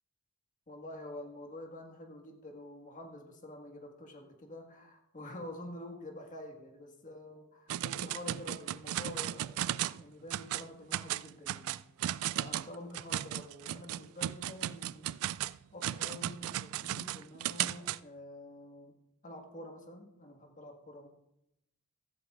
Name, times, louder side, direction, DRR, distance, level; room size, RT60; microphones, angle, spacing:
voice 1, 0.7-11.8 12.3-15.1 15.7-19.0 19.2-21.1, left 1 dB, 35° left, 2 dB, 1.6 m, -47 dB
sound 1, 7.7-10.0 10.3-10.7 10.9-18.0, right 12 dB, 80° right, 0.3 m, -35 dB
14.5 x 14.5 x 2.5 m, 0.85 s
head